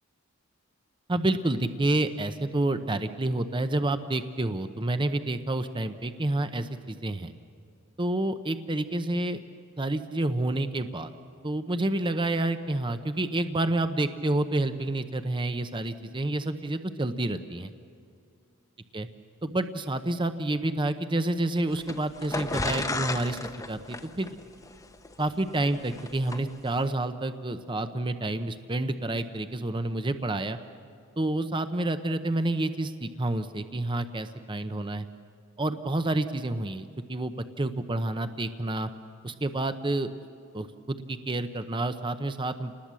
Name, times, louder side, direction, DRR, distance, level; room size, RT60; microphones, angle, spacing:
voice 1, 1.1-7.3 8.0-9.4 9.8-11.1 11.4-17.7 18.9-19.1 19.4-24.4 25.2-30.6 31.2-35.1 35.6-38.9 39.2-40.1 40.5-42.7, right 2 dB, 25° right, 9 dB, 0.8 m, -29 dB
sound 1, 21.7-26.4, left 2 dB, 15° left, 0.9 m, -33 dB
28.5 x 20.0 x 7.5 m, 2.3 s
head